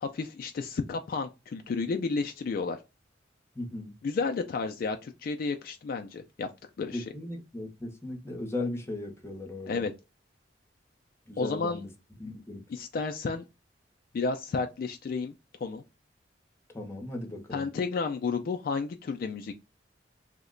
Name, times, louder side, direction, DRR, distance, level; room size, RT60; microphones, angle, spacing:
voice 1, 0.0-2.8 4.0-6.5 6.8-7.0 9.7-9.9 11.4-11.8 12.7-13.4 14.1-15.3 15.6-15.8 17.5-19.6, left 4 dB, 50° left, 0.3 m, -31 dB
voice 2, 3.6-3.9 6.9-9.9 11.3-11.9 12.2-12.6 16.7-17.7, left 2 dB, 15° left, 0.7 m, -37 dB
2.8 x 2.1 x 3.6 m
head